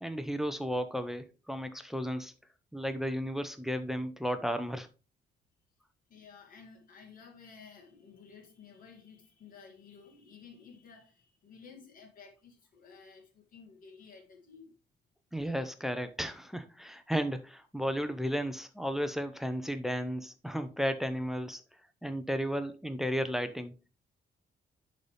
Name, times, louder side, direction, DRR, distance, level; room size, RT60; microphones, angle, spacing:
voice 1, 0.0-2.3 2.7-4.9 15.3-21.6 22.0-23.9, equal, ahead, 0.6 m, -34 dB
voice 2, 6.1-14.8, left 5 dB, 50° left, 2.2 m, -54 dB
11.0 x 4.1 x 3.3 m
cardioid pair, 155°, 19 cm